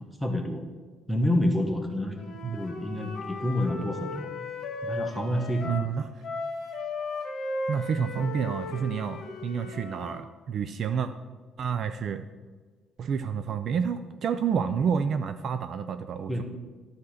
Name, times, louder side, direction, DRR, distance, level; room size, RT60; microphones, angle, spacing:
voice 1, 0.2-0.6 1.1-2.2 2.5-4.3 4.8-5.8 16.3-16.4, left 1 dB, ahead, 3 dB, 1.1 m, -28 dB
Wind instrument woodwind instrument, 2.1-5.9 6.2-10.2, left 3 dB, 45° left, 1.4 m, -36 dB
voice 2, 5.7-6.2 7.7-11.1 11.6-12.3 13.0-16.4, right 7 dB, 45° right, 10 dB, 0.4 m, -29 dB
12.0 x 4.3 x 6.4 m, 1.4 s
cardioid pair, 160°, 0 cm